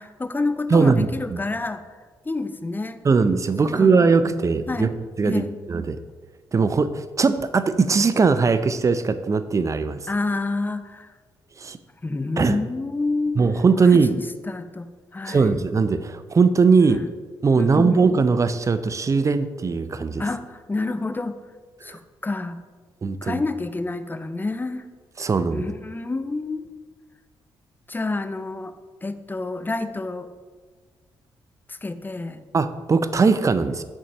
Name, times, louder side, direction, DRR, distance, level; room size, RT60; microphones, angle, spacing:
voice 1, 0.0-1.8 2.2-3.0 3.6-4.0 4.7-4.9 5.2-5.6 10.1-11.1 12.0-13.4 13.8-15.6 16.9-17.0 17.6-18.1 20.2-21.4 21.8-22.6 23.2-24.9 25.5-26.6 27.9-28.7 29.0-30.3 31.7-32.4, left 3 dB, 20° left, 10 dB, 0.6 m, -28 dB
voice 2, 0.7-1.4 3.0-4.9 5.2-6.0 6.5-10.0 11.6-11.8 12.4-12.6 13.4-14.1 15.3-17.0 17.4-20.2 21.8-22.0 23.0-23.4 25.2-25.7 32.5-33.8, right 4 dB, 35° right, 11 dB, 0.5 m, -20 dB
6.2 x 4.0 x 5.9 m, 1.4 s
cardioid pair, 65°, 9 cm